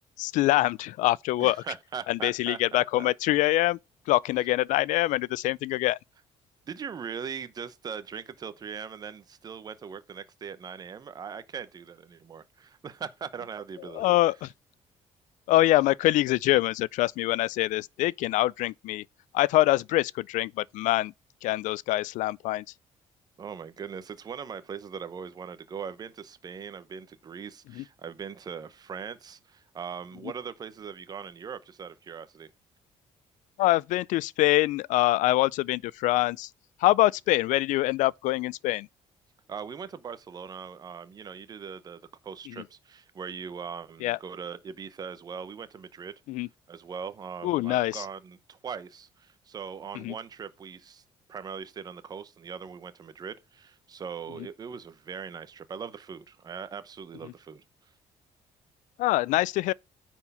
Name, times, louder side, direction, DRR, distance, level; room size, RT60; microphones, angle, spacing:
voice 1, 0.2-1.6 2.1-3.8 4.1-6.0 13.9-14.5 15.5-19.0 19.3-21.1 21.4-22.6 27.8-27.9 33.6-36.5 36.8-38.9 44.0-44.2 46.3-46.5 47.4-48.0 50.0-50.1 59.0-59.7, left 17 dB, 85° left, 0.4 m, -24 dB
voice 2, 1.4-3.1 6.7-14.2 23.4-32.5 39.5-46.1 46.7-51.0 51.3-57.6, right 6 dB, 30° right, 0.9 m, -40 dB
9.7 x 4.5 x 5.5 m
cardioid pair, 165°, 13 cm